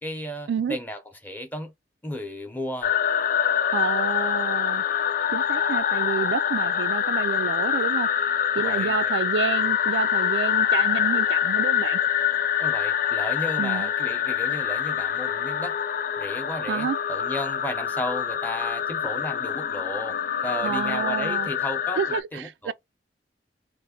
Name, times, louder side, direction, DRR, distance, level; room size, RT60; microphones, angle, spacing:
voice 1, 0.0-1.7 2.0-2.9 8.5-9.1 12.6-15.8 16.2-20.2 20.4-22.7, equal, 10° left, 0.7 m, -34 dB
sound 1, 2.8-22.2, left 9 dB, 50° left, 0.3 m, -25 dB
voice 2, 3.7-4.8 5.3-8.3 8.5-12.0 13.6-13.9 16.7-17.0 20.6-21.5 22.0-22.7, right 6 dB, 75° right, 0.3 m, -29 dB
3.3 x 2.1 x 3.6 m
head